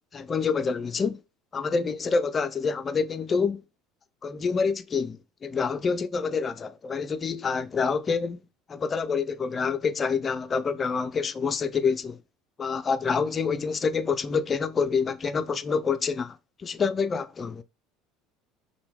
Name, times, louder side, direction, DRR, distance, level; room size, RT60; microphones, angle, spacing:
voice 1, 0.1-1.2 1.5-3.6 4.2-8.4 8.7-12.2 12.6-17.6, left 5 dB, 25° left, 0.4 m, -27 dB
5.7 x 2.2 x 3.4 m
supercardioid pair, 120°, 0 cm